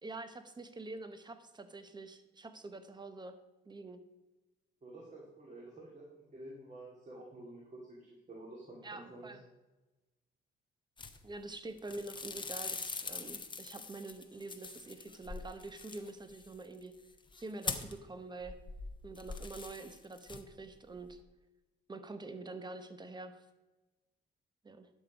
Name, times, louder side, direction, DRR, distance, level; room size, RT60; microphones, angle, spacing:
voice 1, 0.0-3.3 3.6-4.0 8.8-9.4 11.2-16.9 17.4-18.6 19.0-21.2 21.9-23.4 24.6-24.9, right 2 dB, 20° right, 9 dB, 1.0 m, -46 dB
voice 2, 4.8-9.3, right 1 dB, 35° right, -3 dB, 2.3 m, -50 dB
sound 1, 11.0-11.5 11.8-18.1 18.4-20.7 20.9-21.2, left 4 dB, 25° left, 0.9 m, -43 dB
11.5 x 6.1 x 5.1 m, 1.1 s
cardioid pair, 90°, 20 cm